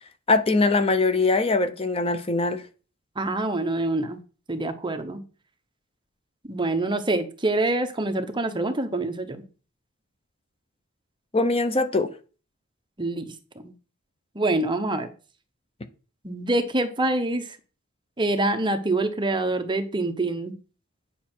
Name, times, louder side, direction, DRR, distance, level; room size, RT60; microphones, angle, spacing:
voice 1, 0.3-2.6 11.3-12.1, left 3 dB, 25° left, 0.7 m, -22 dB
voice 2, 3.2-4.2 4.5-5.2 6.5-9.4 13.0-13.3 13.6-13.7 14.3-15.1 16.2-17.5 18.2-20.5, right 2 dB, 20° right, 0.9 m, -25 dB
9.3 x 5.8 x 4.4 m
head